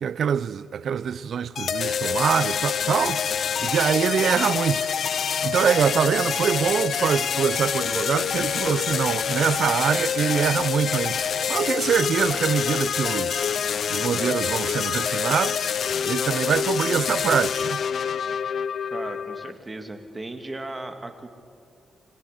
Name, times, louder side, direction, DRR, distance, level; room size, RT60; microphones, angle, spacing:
voice 1, 0.0-3.2 3.6-4.9 5.4-11.2 11.5-13.4 13.9-15.6 16.0-17.8, right 8 dB, 70° right, 0.6 m, -24 dB
sound 1, 1.6-19.5, left 7 dB, 65° left, 0.6 m, -26 dB
voice 2, 18.9-21.3, right 2 dB, 20° right, 2.2 m, -36 dB
27.0 x 20.0 x 8.1 m
cardioid pair, 110°, 0 cm